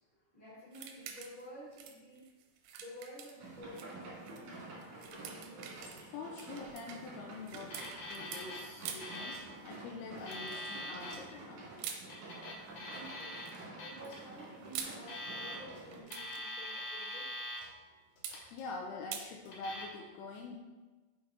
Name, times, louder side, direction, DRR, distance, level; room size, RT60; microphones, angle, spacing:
voice 1, 0.1-2.2 2.8-5.7 12.9-13.4 13.8-17.3, equal, 35° right, -9 dB, 0.6 m, -51 dB
sound 1, 0.7-1.5 1.7-3.9 4.3-4.4 4.8-8.4 8.8-9.2 10.3-10.6 11.8-12.0 13.2-13.6 14.4-15.0 15.9-16.4 18.2-18.4 19.1-19.3, right 8 dB, 85° right, 2.7 m, -46 dB
sound 2, 3.4-16.0, right 2 dB, 55° right, 2.1 m, -50 dB
voice 2, 5.8-7.8 8.1-11.7 18.3-20.6, left 3 dB, 80° left, 1 dB, 2.4 m, -45 dB
Alarm, 7.6-8.6 8.9-9.5 10.1-11.2 12.0-13.5 13.8-14.2 14.9-15.8 16.1-17.7 18.2-18.7 19.5-19.8, left 1 dB, 55° left, 2.8 m, -43 dB
6.5 x 5.6 x 3.6 m, 1.2 s
omnidirectional pair, 5.0 m